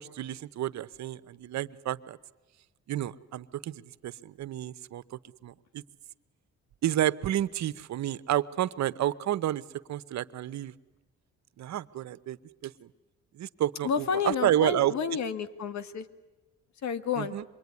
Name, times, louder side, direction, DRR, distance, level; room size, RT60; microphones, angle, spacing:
voice 1, 0.0-2.2 2.9-5.8 6.8-9.6 9.9-10.7 11.6-12.4 12.6-12.9 13.3-14.9 17.2-17.4, right 12 dB, 65° right, 15 dB, 0.8 m, -30 dB
voice 2, 13.8-16.1 16.8-17.3, left 6 dB, 65° left, 12 dB, 1.5 m, -30 dB
26.0 x 22.5 x 9.6 m, 1.1 s
cardioid pair, 90°, 30 cm